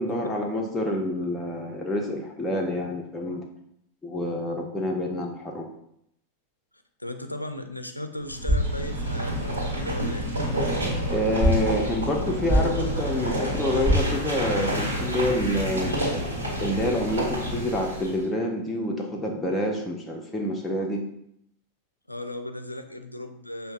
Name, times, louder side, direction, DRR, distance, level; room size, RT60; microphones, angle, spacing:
voice 1, 0.0-3.4 4.0-5.7 11.1-16.0 16.6-21.1, left 1 dB, 5° left, -2 dB, 0.6 m, -27 dB
voice 2, 7.0-10.3 22.1-23.7, left 1 dB, 85° left, 7 dB, 0.3 m, -36 dB
sound 1, 8.2-18.2, equal, 75° right, 1.5 m, -29 dB
sound 2, 8.5-14.1, equal, 35° right, 1.0 m, -28 dB
6.3 x 2.6 x 2.4 m, 0.75 s
figure-of-eight pair, 90°, 0 cm